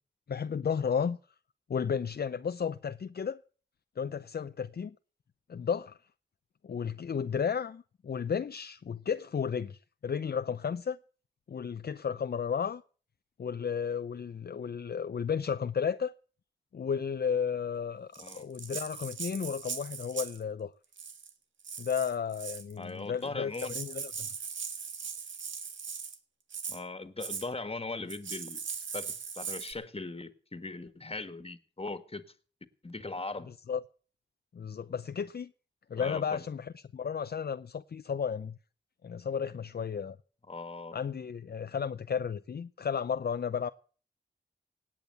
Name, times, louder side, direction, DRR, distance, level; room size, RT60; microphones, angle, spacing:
voice 1, 0.3-1.2 1.7-3.4 4.0-4.9 5.5-6.0 6.6-11.0 11.5-12.8 13.4-16.1 16.7-20.7 21.8-24.3 33.7-33.8 34.5-35.5 35.9-38.6 39.0-40.2 40.9-43.7, left 7 dB, 55° left, 0.6 m, -33 dB
Rattle (instrument), 18.1-20.4 20.9-21.3 21.6-22.7 23.3-23.4 23.5-26.2 26.5-26.8 27.2-27.5 28.1-29.7, right 6 dB, 85° right, 1.6 m, -39 dB
voice 2, 18.2-18.5 22.8-23.7 26.7-28.6 28.9-32.2 32.8-33.5 36.0-36.4 40.5-41.0, left 3 dB, 30° left, 1.8 m, -39 dB
17.5 x 8.8 x 6.9 m
cardioid pair, 50°, 19 cm